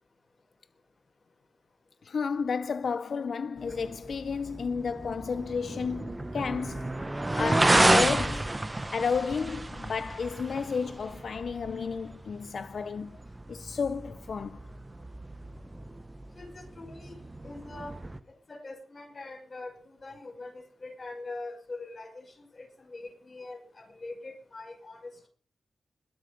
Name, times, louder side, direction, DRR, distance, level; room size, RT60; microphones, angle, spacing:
voice 1, 2.0-7.0 7.4-8.6 8.9-13.2 13.5-14.6, left 5 dB, 60° left, 0.5 m, -32 dB
sound 1, 3.6-18.2, right 2 dB, 15° right, 0.9 m, -31 dB
voice 2, 16.4-17.2 17.4-18.0 18.5-25.3, left 2 dB, 35° left, 5.9 m, -43 dB
21.0 x 7.7 x 5.2 m
wide cardioid pair, 145°, 0 cm